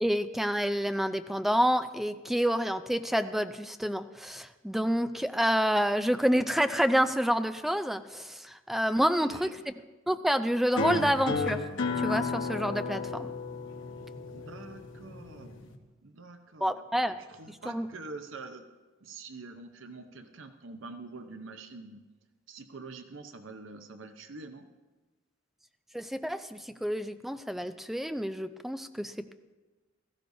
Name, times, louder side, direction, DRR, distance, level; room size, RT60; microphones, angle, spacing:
voice 1, 0.0-9.5 10.1-11.7 12.0-13.3 16.6-17.2 17.7-17.9 25.9-29.1, equal, ahead, 10 dB, 0.4 m, -28 dB
voice 2, 9.0-9.5 14.3-15.6 16.0-16.7 17.3-18.6 19.0-22.0 22.5-24.7, right 3 dB, 70° right, 7 dB, 0.8 m, -45 dB
sound 1, 10.8-15.8, left 3 dB, 65° left, 1.0 m, -33 dB
16.5 x 14.5 x 2.7 m, 1.2 s
head